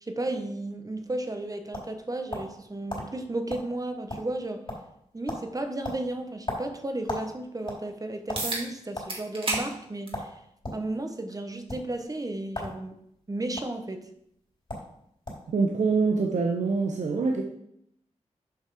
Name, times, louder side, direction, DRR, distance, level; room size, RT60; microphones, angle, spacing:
voice 1, 0.0-4.6 5.1-10.4 10.7-13.0 13.3-14.1, right 2 dB, 30° right, 7 dB, 1.1 m, -34 dB
sound 1, 1.2-2.6 2.9-3.1 3.5-3.7 3.9-4.4 4.7-5.0 5.3-5.5 5.8-7.3 7.6-8.4 8.9-9.1 9.5-9.7 10.1-10.8 11.6-11.8 12.5-12.8 13.1-13.6 14.4-14.5 14.7-14.9 15.3-15.5, left 1 dB, 45° left, 3.7 m, -35 dB
sound 2, 8.4-8.7 9.1-9.7 10.1-10.2 11.3-11.4 16.3-16.4, right 2 dB, 50° right, 2.0 m, -30 dB
voice 2, 15.5-17.4, right 4 dB, 85° right, 2 dB, 0.8 m, -25 dB
7.5 x 5.5 x 4.9 m, 0.73 s
cardioid pair, 65°, 12 cm